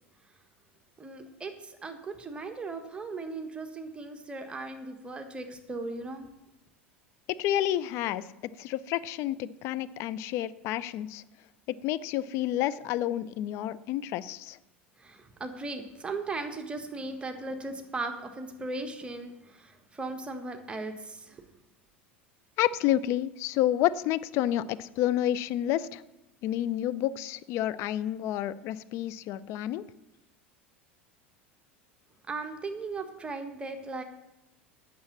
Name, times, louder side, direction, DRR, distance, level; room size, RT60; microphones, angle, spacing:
voice 1, 1.0-6.3 15.0-21.4 32.3-34.0, right 3 dB, 15° right, 5 dB, 1.4 m, -37 dB
voice 2, 7.4-11.2 11.7-14.6 22.6-26.0 26.4-29.8, left 12 dB, 45° left, 15 dB, 0.5 m, -29 dB
8.7 x 6.9 x 8.5 m, 0.92 s
figure-of-eight pair, 80°, 6 cm